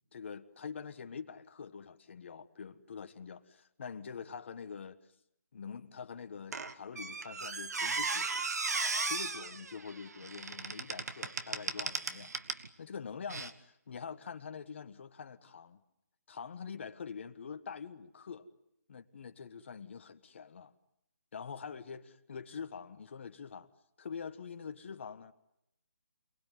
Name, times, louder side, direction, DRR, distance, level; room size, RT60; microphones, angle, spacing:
voice 1, 0.1-5.0 5.5-8.4 9.0-12.3 12.8-15.8 16.3-18.4 18.9-20.7 21.3-23.7 24.0-25.3, left 6 dB, 40° left, 1.5 m, -45 dB
Squeak, 6.5-12.7 13.3-13.5, right 4 dB, 65° right, 1.8 m, -36 dB
28.5 x 20.5 x 9.4 m
hypercardioid pair, 170°, 9 cm